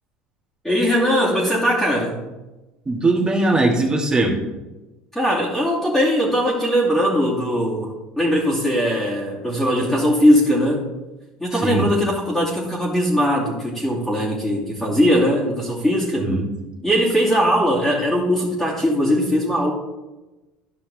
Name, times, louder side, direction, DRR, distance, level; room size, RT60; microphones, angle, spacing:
voice 1, 0.6-2.2 5.1-10.9 11.4-16.3 16.8-19.7, equal, 5° left, -7 dB, 2.5 m, -20 dB
voice 2, 2.9-4.4 11.5-11.9 16.2-16.5, right 2 dB, 20° right, 0 dB, 2.1 m, -20 dB
12.0 x 5.6 x 3.6 m, 1.1 s
hypercardioid pair, 80°, 4 cm